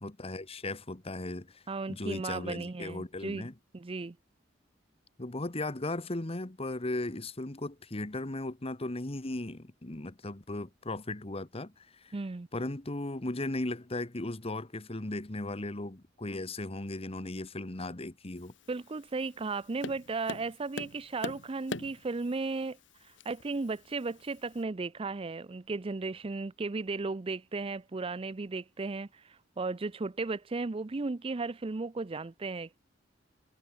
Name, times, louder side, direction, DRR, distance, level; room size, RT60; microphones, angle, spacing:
voice 1, 0.0-1.6 1.9-3.5 5.2-12.2 12.5-18.5, left 2 dB, 30° left, 1.3 m, -37 dB
voice 2, 1.7-3.5 3.7-4.2 12.1-12.5 18.7-32.8, right 3 dB, 30° right, 0.5 m, -35 dB
Tap, 18.4-24.6, left 2 dB, 75° left, 2.8 m, -45 dB
head